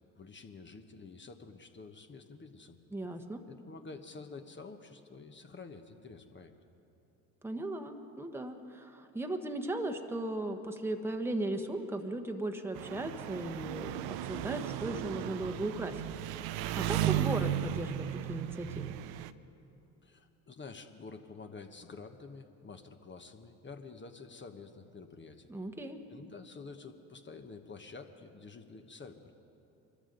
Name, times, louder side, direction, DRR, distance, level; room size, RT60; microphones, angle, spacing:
voice 1, 0.0-2.8 3.5-6.5 20.0-25.5 26.1-29.3, left 4 dB, 25° left, 6 dB, 1.2 m, -49 dB
voice 2, 2.9-3.4 7.4-13.9 14.2-16.0 16.8-19.0 25.5-26.0, right 1 dB, 5° right, 5 dB, 1.2 m, -37 dB
Engine, 12.7-19.3, right 12 dB, 60° right, 0.7 m, -35 dB
24.0 x 13.5 x 3.9 m, 2.8 s
hypercardioid pair, 65°, 43 cm